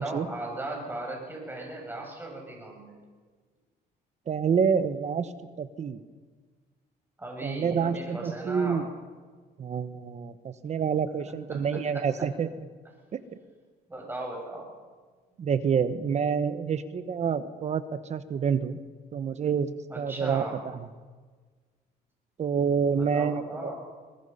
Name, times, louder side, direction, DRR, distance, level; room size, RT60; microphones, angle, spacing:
voice 1, 0.0-3.0 7.2-8.8 11.3-11.8 13.9-14.7 19.9-20.6 22.9-23.8, right 2 dB, 10° right, 0 dB, 7.5 m, -37 dB
voice 2, 4.3-5.3 5.6-6.0 7.4-8.9 9.6-12.5 15.4-18.8 19.1-20.4 20.7-20.9 22.4-23.7, right 6 dB, 40° right, 12 dB, 1.1 m, -28 dB
21.5 x 21.0 x 5.7 m, 1.4 s
cardioid pair, 110°, 17 cm